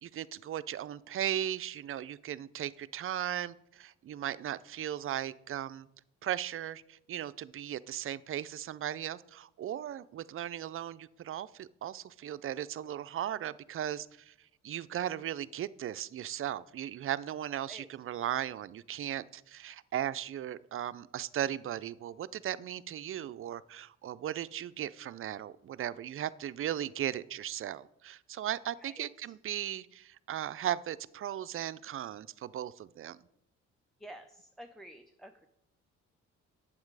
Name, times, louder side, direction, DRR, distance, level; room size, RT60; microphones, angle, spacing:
voice 1, 0.0-5.9 6.2-14.3 14.6-33.2, right 11 dB, 45° right, 15 dB, 0.4 m, -37 dB
voice 2, 34.0-35.5, equal, ahead, 4 dB, 0.6 m, -49 dB
8.7 x 7.3 x 4.7 m, 0.80 s
cardioid pair, 90°, 30 cm